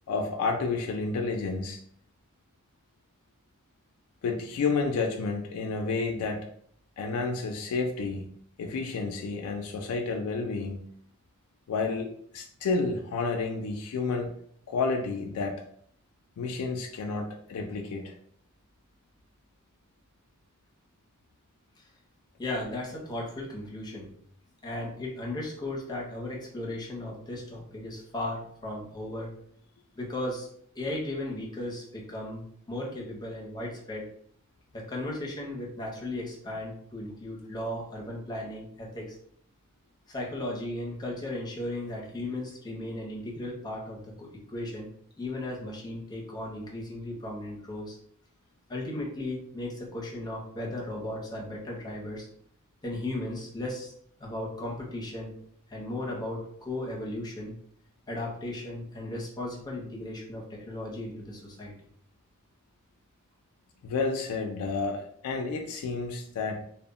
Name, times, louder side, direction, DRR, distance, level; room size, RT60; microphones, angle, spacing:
voice 1, 0.1-1.8 4.2-6.5 7.0-8.2 8.6-10.8 11.7-14.3 14.7-15.6 16.4-18.1 63.8-66.6, left 4 dB, 85° left, 3 dB, 0.3 m, -30 dB
voice 2, 22.4-24.1 24.6-29.3 29.9-30.5 30.7-34.1 34.7-39.2 40.1-44.9 45.2-48.0 48.7-52.3 52.8-53.9 54.2-55.4 55.7-57.6 58.1-61.7, left 1 dB, 20° left, -2 dB, 0.6 m, -36 dB
2.1 x 2.0 x 3.5 m, 0.66 s
head